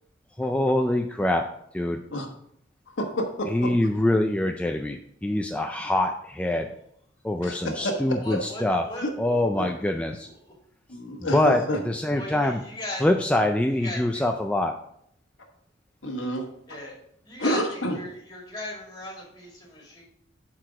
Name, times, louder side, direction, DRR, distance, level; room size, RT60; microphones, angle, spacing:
voice 1, 0.4-1.4 1.7-2.0 3.5-6.7 7.2-8.9 9.2-10.3 11.3-12.6 13.0-14.7, left 1 dB, 5° left, 4 dB, 0.3 m, -24 dB
voice 2, 2.9-3.7 7.4-8.2 9.0-9.1 9.6-9.7 10.9-11.8 16.0-16.4 16.7-16.8 17.4-18.0, equal, 90° left, 2 dB, 1.3 m, -29 dB
voice 3, 7.6-9.1 9.3-9.7 10.2-10.5 12.1-13.1 13.7-14.3 16.7-16.9 17.2-20.0, left 1 dB, 20° left, -2 dB, 2.5 m, -39 dB
7.7 x 4.7 x 4.9 m, 0.70 s
head